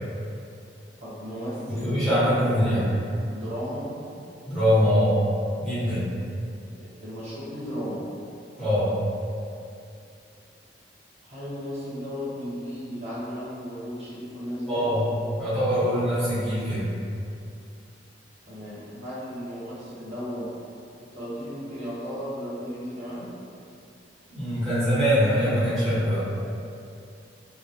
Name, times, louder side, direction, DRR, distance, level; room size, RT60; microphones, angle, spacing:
voice 1, 1.0-2.1 2.6-2.9 3.3-4.3 6.8-8.1 11.2-14.9 18.5-20.5 21.0-23.4, equal, 40° right, -10 dB, 0.8 m, -35 dB
voice 2, 1.7-2.8 4.5-5.1 5.6-6.1 8.6-8.9 14.7-15.0 15.4-16.9 24.3-26.3, equal, ahead, -15 dB, 1.0 m, -23 dB
2.1 x 2.1 x 2.7 m, 2.5 s
head